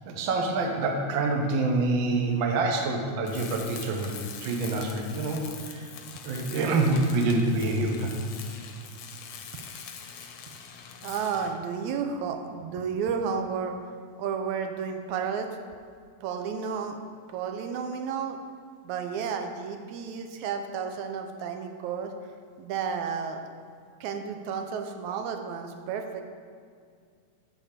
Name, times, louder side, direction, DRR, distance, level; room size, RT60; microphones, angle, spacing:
voice 1, 0.1-5.9 6.2-8.2, right 2 dB, 60° right, 2 dB, 1.4 m, -26 dB
Tools, 3.2-11.6, left 7 dB, 70° left, 1.5 m, -43 dB
voice 2, 11.0-13.7 14.2-15.5 16.2-17.0 17.3-18.4 18.8-22.1 22.6-23.4 24.0-26.2, right 6 dB, 85° right, 5 dB, 2.1 m, -32 dB
10.0 x 4.3 x 7.3 m, 2.2 s
omnidirectional pair, 3.3 m